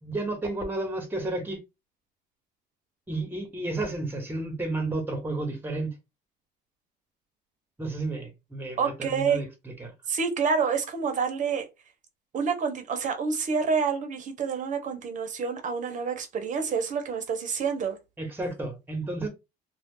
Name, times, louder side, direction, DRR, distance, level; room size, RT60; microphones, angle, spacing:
voice 1, 0.0-1.6 3.1-5.9 7.8-9.9 18.2-19.3, right 2 dB, 10° right, 1.2 m, -32 dB
voice 2, 8.8-9.4 10.1-11.7 12.3-18.0, right 5 dB, 50° right, 0.9 m, -28 dB
2.4 x 2.4 x 3.7 m
cardioid pair, 110°, 17 cm